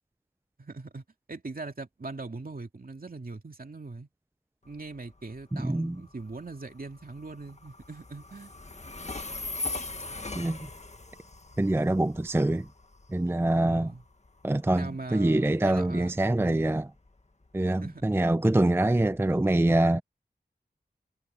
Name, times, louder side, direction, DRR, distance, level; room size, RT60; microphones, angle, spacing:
voice 1, 0.6-1.0 1.3-4.1 4.6-8.5 13.7-14.0 14.7-16.7 17.8-18.1, right 3 dB, 60° right, 2.4 m, -41 dB
Train, 4.6-19.4, left 3 dB, 40° left, 1.6 m, -42 dB
voice 2, 5.5-6.0 10.4-10.6 11.6-12.7 13.1-13.9 14.4-16.9 17.5-20.0, right 1 dB, 15° right, 0.5 m, -25 dB
wide cardioid pair, 65°, 17 cm